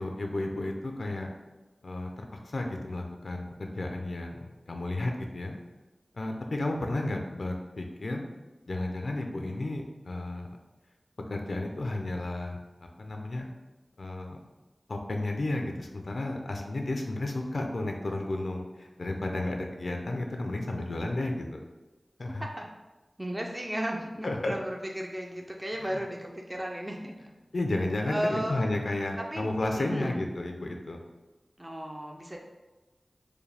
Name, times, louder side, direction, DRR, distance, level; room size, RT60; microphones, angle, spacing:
voice 1, 0.0-1.3 1.8-5.5 6.1-8.2 8.7-10.6 11.3-13.5 14.0-14.4 14.9-21.6 22.2-22.4 24.2-24.5 25.8-26.0 27.5-31.0, left 2 dB, 75° left, 3 dB, 0.5 m, -32 dB
voice 2, 22.2-22.7 23.2-27.3 28.0-28.6 29.3-30.2 31.6-32.4, equal, 20° right, 1 dB, 0.5 m, -35 dB
4.8 x 2.2 x 3.3 m, 1.1 s
wide cardioid pair, 45°, 0 cm